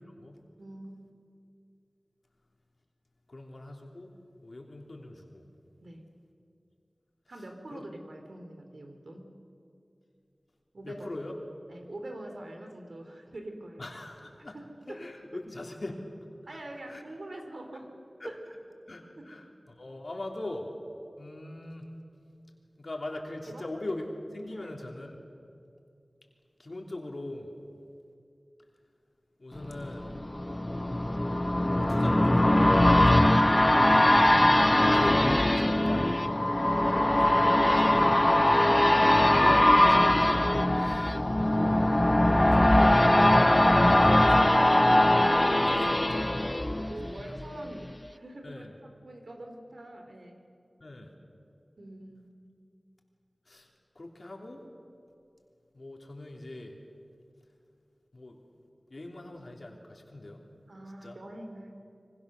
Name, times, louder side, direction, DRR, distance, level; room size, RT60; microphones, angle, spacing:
voice 1, 0.6-1.0 5.8-6.1 7.3-9.3 10.7-11.1 11.7-13.9 14.5-14.6 14.9-15.0 16.5-17.9 18.2-18.4 19.2-19.3 23.5-23.6 24.5-24.8 33.6-34.9 36.6-38.6 46.7-50.4 51.8-52.3 60.7-61.8, right 1 dB, 75° right, 4 dB, 3.1 m, -44 dB
voice 2, 3.3-4.2 4.4-5.5 7.3-7.4 7.7-7.8 10.8-11.4 13.8-14.6 14.9-16.1 16.9-17.0 18.2-18.3 18.9-20.7 21.2-21.9 22.8-24.1 24.3-25.2 26.6-27.5 29.4-30.1 31.7-33.3 34.8-36.5 39.1-41.8 42.5-43.7 44.0-46.7 47.1-47.3 48.4-48.8 50.8-51.1 53.5-53.7 53.9-54.6 55.7-56.8 58.1-58.4 58.9-60.5 61.0-61.2, left 2 dB, 60° left, 1 dB, 3.1 m, -40 dB
sound 1, 29.7-47.4 47.9-48.0, left 1 dB, 25° left, 0.6 m, -22 dB
24.5 x 24.5 x 6.6 m, 2.5 s
wide cardioid pair, 45°, 0 cm